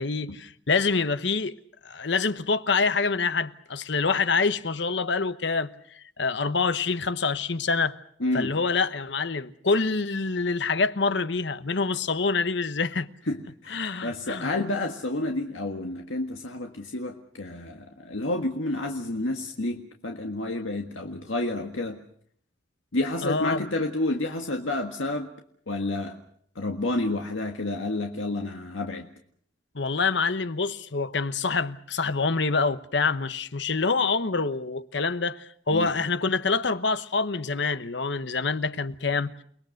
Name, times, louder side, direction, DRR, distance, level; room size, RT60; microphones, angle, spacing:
voice 1, 0.0-1.6 1.8-7.9 8.3-13.1 13.7-14.5 23.2-23.6 29.7-39.3, left 4 dB, 65° left, 1.0 m, -26 dB
voice 2, 8.2-8.5 13.3-22.0 22.9-25.3 25.7-26.2 26.5-29.1 35.7-35.9, left 2 dB, 90° left, 1.7 m, -30 dB
29.5 x 20.5 x 6.6 m
head